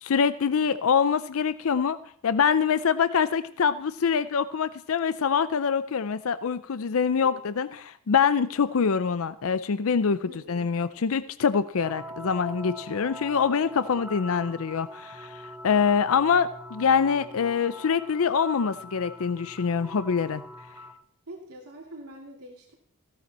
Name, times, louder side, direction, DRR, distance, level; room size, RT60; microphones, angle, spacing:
voice 1, 0.0-2.0 2.2-20.4, left 6 dB, 65° left, 13 dB, 0.5 m, -25 dB
voice 2, 10.2-10.6 13.5-13.6 21.3-22.7, right 1 dB, 80° right, -1 dB, 2.7 m, -44 dB
sound 1, 11.8-20.9, left 1 dB, 10° right, 1.1 m, -43 dB
15.5 x 13.0 x 4.2 m, 0.63 s
head